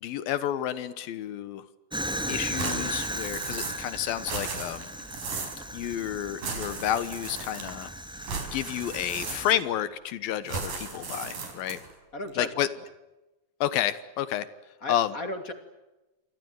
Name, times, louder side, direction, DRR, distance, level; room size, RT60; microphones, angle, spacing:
voice 1, 0.0-1.6 2.3-4.9 5.7-7.9 8.5-11.8 12.4-12.7 13.6-14.5 14.9-15.1, left 11 dB, 85° left, 15 dB, 3.0 m, -30 dB
Fire, 1.9-9.5, equal, ahead, 2.1 m, -36 dB
sound 1, 2.6-3.9 4.2-5.6 6.4-7.8 8.2-9.7 10.5-11.9, right 4 dB, 70° right, 6.2 m, -36 dB
voice 2, 12.1-12.8 14.8-15.5, left 1 dB, 25° left, 8 dB, 2.6 m, -36 dB
28.0 x 25.0 x 8.0 m, 1.1 s
omnidirectional pair, 4.1 m